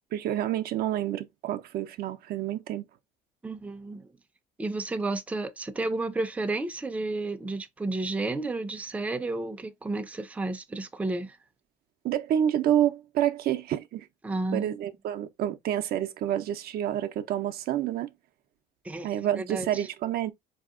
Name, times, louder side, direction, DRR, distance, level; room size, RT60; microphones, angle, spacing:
voice 1, 0.1-2.9 12.0-14.1 14.5-18.1 19.0-20.3, right 11 dB, 65° right, 0.5 m, -28 dB
voice 2, 3.4-4.1 4.6-11.4 14.2-14.7 18.8-19.9, right 2 dB, 10° right, 0.4 m, -32 dB
4.1 x 2.7 x 2.4 m
cardioid pair, 110°, 17 cm